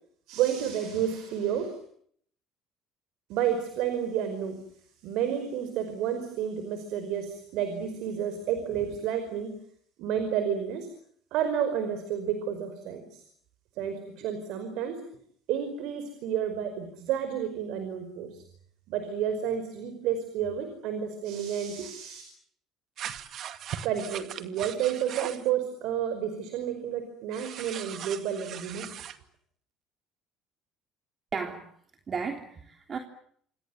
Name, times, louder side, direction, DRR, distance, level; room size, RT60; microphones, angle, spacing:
voice 1, 0.3-1.8 3.3-4.6 5.0-9.6 10.0-10.9 11.3-13.2 13.8-15.0 15.5-18.4 18.9-22.2 23.8-28.9, right 9 dB, 75° right, 9 dB, 5.1 m, -30 dB
sound 1, 23.0-25.5 27.3-29.2, right 10 dB, 60° right, 2.3 m, -39 dB
voice 2, 31.3-31.7 32.1-33.0, right 5 dB, 40° right, 5 dB, 3.4 m, -34 dB
28.0 x 26.5 x 7.3 m, 0.64 s
supercardioid pair, 85°, 0 cm